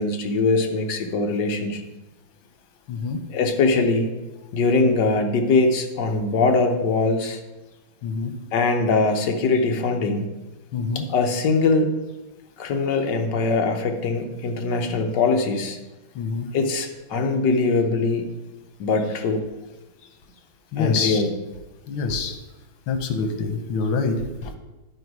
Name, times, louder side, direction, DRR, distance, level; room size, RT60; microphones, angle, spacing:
voice 1, 0.0-1.8 3.3-4.1 4.5-7.4 8.5-10.3 11.1-11.9 12.6-15.8 16.5-18.3 18.8-19.5 20.8-21.3, left 3 dB, 65° left, 4 dB, 1.5 m, -22 dB
voice 2, 2.9-3.2 8.0-8.3 10.7-11.0 16.1-16.5 20.7-21.2 21.9-22.4 22.9-24.6, left 4 dB, 90° left, 7 dB, 1.7 m, -26 dB
11.0 x 4.9 x 4.7 m, 1.1 s
omnidirectional pair, 2.1 m